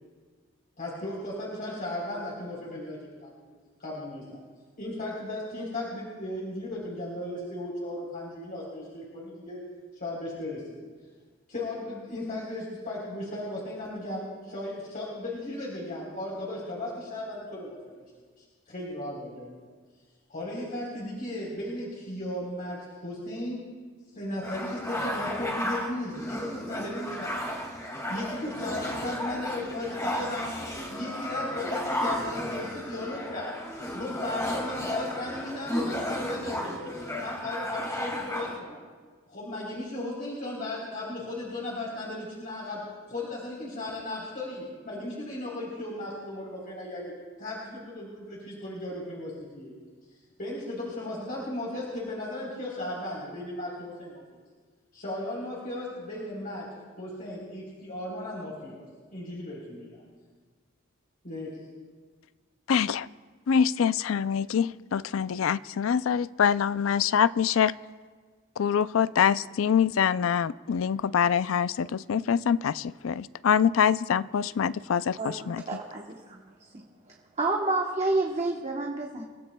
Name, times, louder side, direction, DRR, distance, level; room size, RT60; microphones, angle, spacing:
voice 1, 0.8-3.5 3.8-4.4 4.8-9.6 9.9-10.8 11.5-18.0 18.4-19.6 20.3-23.6 24.1-27.7 28.1-30.5 30.9-33.6 33.9-38.8 39.3-47.1 47.4-49.7 50.4-54.2 54.9-56.7 57.0-58.8 59.1-60.0 61.2-61.6, left 1 dB, 40° left, -5 dB, 3.6 m, -36 dB
sound 1, 24.4-38.6, equal, 15° left, 2.1 m, -33 dB
voice 2, 62.7-63.1 63.5-67.7 68.6-75.6, left 7 dB, 70° left, 17 dB, 0.4 m, -25 dB
voice 3, 75.2-76.5 77.4-79.3, right 2 dB, 30° right, 0 dB, 1.1 m, -29 dB
30.0 x 16.5 x 2.3 m, 1.5 s
head